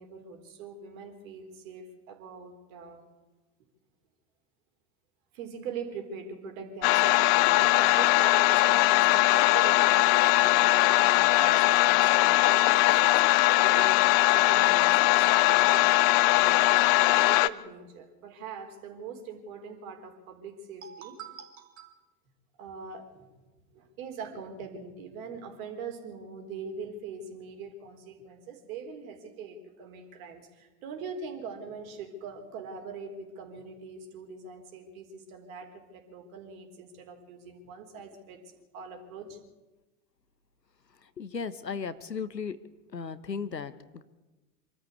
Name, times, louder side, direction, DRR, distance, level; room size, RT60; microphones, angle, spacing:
voice 1, 0.0-3.0 5.3-14.0 14.3-15.9 16.2-21.9 22.6-38.4 38.7-39.4, right 5 dB, 55° right, 4 dB, 4.3 m, -42 dB
sound 1, 6.8-17.5, left 19 dB, 40° left, 0.7 m, -21 dB
voice 2, 41.2-42.6 42.9-44.0, left 5 dB, 90° left, 14 dB, 1.2 m, -35 dB
25.5 x 13.0 x 8.4 m, 1.2 s
figure-of-eight pair, 95°, 48 cm